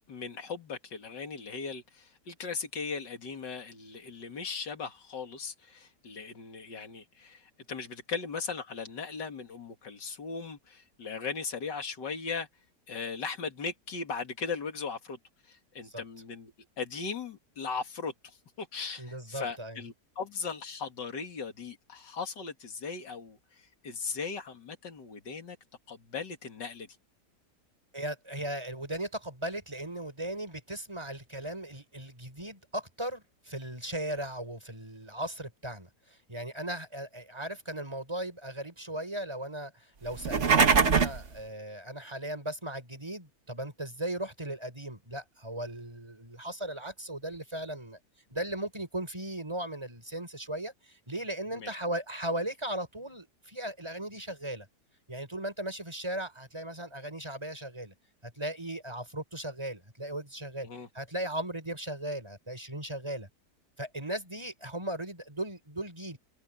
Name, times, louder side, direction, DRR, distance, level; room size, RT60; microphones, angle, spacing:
voice 1, 0.1-12.5 12.9-15.2 15.4-25.6 25.9-26.9 51.5-51.8 60.6-60.9, left 5 dB, 85° left, 2.9 m, -38 dB
voice 2, 19.0-19.8 27.9-48.0 48.3-54.7 55.1-57.9 58.2-60.7 60.9-63.3 63.8-66.2, right 1 dB, 15° right, 6.1 m, -37 dB
sound 1, 40.1-41.3, right 5 dB, 45° right, 1.6 m, -22 dB
omnidirectional pair, 1.8 m